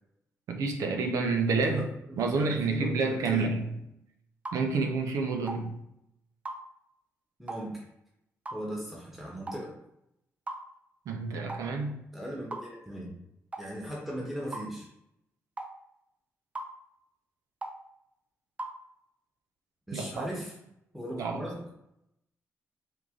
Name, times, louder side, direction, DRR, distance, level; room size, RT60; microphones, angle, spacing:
voice 1, 0.5-3.8 4.5-5.8 11.1-12.0 19.9-20.3 21.2-21.5, right 4 dB, 90° right, 4 dB, 0.6 m, -29 dB
voice 2, 2.2-3.5 7.4-7.8 8.5-9.7 12.1-13.1 13.6-14.9 19.9-20.5 20.9-21.6, equal, 5° right, -4 dB, 1.1 m, -38 dB
sound 1, 4.5-4.6 5.5-5.6 6.5-6.6 7.5-7.7 8.5-8.6 9.5-9.7 10.5-10.6 11.5-11.7 12.5-12.7 13.5-13.7 14.5-14.7 15.6-15.7 16.6-16.7 17.6-17.8 18.6-18.8, right 2 dB, 25° right, 0.4 m, -38 dB
4.6 x 2.6 x 3.7 m, 0.82 s
cardioid pair, 100°, 5 cm